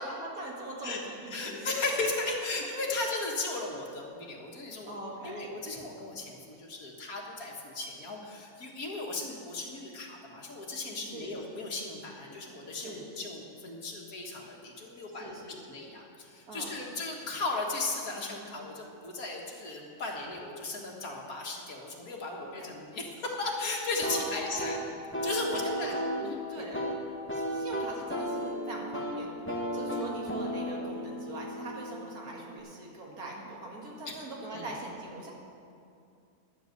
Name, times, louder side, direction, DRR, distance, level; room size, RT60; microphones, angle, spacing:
voice 1, 0.0-1.7 3.0-3.2 4.9-5.5 11.0-11.4 12.8-13.1 15.1-15.8 16.5-16.8 20.1-20.2 22.3-22.7 24.0-24.7 25.5-26.0 26.5-26.9 27.3-35.3, right 2 dB, 75° right, -2 dB, 2.5 m, -42 dB
voice 2, 1.3-5.0 5.2-15.3 15.7-24.9 25.2-25.9 26.2-26.6 34.1-34.2 34.5-34.7, left 3 dB, 70° left, 0 dB, 2.1 m, -36 dB
sound 1, 24.0-32.6, equal, 10° left, 1.2 m, -35 dB
11.5 x 8.1 x 7.9 m, 2.5 s
omnidirectional pair, 1.6 m